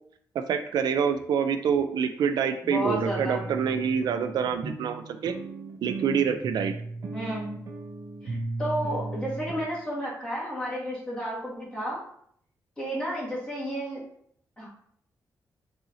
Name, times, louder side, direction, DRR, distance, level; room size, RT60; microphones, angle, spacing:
voice 1, 0.3-5.3 5.8-6.7, right 7 dB, 85° right, 8 dB, 0.4 m, -26 dB
sound 1, 1.7-1.8 2.2-2.3 2.9-9.7, right 2 dB, 55° right, 0.6 m, -36 dB
voice 2, 2.6-3.4 7.1-7.5 8.2-12.0 12.8-14.0 14.6-14.7, equal, 15° left, -6 dB, 1.6 m, -32 dB
5.5 x 2.7 x 2.7 m, 0.65 s
wide cardioid pair, 165°, 7 cm